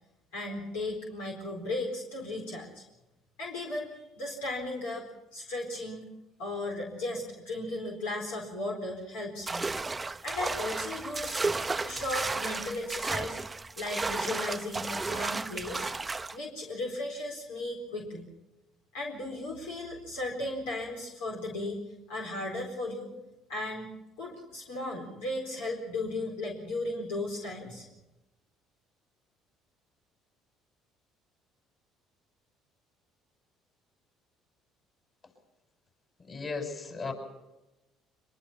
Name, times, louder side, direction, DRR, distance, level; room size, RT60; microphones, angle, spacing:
voice 1, 0.3-2.8 3.4-6.1 6.4-9.7 10.2-11.4 11.8-13.4 13.8-15.9 16.3-18.2 18.9-23.1 23.5-27.9, left 2 dB, 85° left, -1 dB, 4.3 m, -36 dB
sound 1, 9.5-16.4, right 3 dB, 20° right, 0.8 m, -33 dB
voice 2, 36.2-37.1, left 4 dB, 40° left, 4 dB, 7.6 m, -35 dB
23.5 x 22.5 x 5.8 m, 0.99 s
hypercardioid pair, 65°, 0 cm